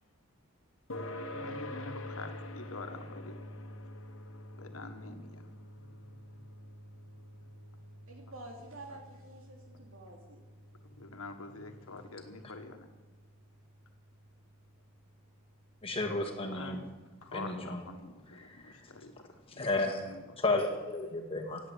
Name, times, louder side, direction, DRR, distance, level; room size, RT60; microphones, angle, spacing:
sound 1, 0.9-15.8, left 1 dB, 65° left, 1.5 m, -47 dB
voice 1, 1.3-3.4 3.7-3.9 4.6-5.5 5.8-6.4 8.9-9.0 10.8-12.9 16.5-16.8 17.2-19.1 19.5-20.2, left 3 dB, 85° left, 6 dB, 1.6 m, -46 dB
voice 2, 8.1-10.4, right 2 dB, 70° right, 2 dB, 3.0 m, -49 dB
voice 3, 15.8-16.8 17.3-17.8 18.3-18.9 19.5-21.6, left 2 dB, 25° left, 1 dB, 2.1 m, -33 dB
16.5 x 9.1 x 8.1 m, 1.2 s
head